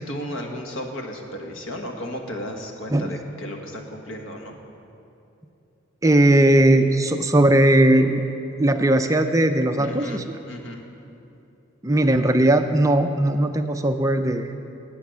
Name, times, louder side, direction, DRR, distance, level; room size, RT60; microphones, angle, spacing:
voice 1, 0.1-4.6 9.8-10.8, equal, 75° left, 2 dB, 1.5 m, -34 dB
voice 2, 6.0-8.2 8.6-10.2 11.8-14.5, right 1 dB, 15° right, 7 dB, 0.4 m, -18 dB
11.5 x 8.1 x 9.2 m, 2.8 s
head